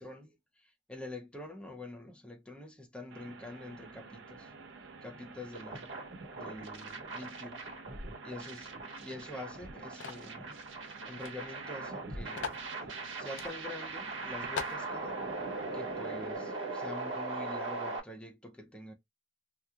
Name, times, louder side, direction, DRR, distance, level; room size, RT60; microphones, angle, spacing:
voice 1, 0.0-4.5 5.0-7.6 8.2-8.7 9.0-12.5 13.2-15.2 15.7-18.9, left 2 dB, 5° left, 0.6 m, -46 dB
sound 1, 3.1-16.4, right 4 dB, 65° right, 0.6 m, -51 dB
sound 2, 5.5-18.0, right 3 dB, 85° right, 1.2 m, -40 dB
sound 3, 10.0-10.3 11.2-11.3 11.6-11.7 12.4-12.7 13.4-13.6 14.0-14.1 14.6-14.8, left 6 dB, 70° left, 0.6 m, -39 dB
2.9 x 2.3 x 3.4 m
head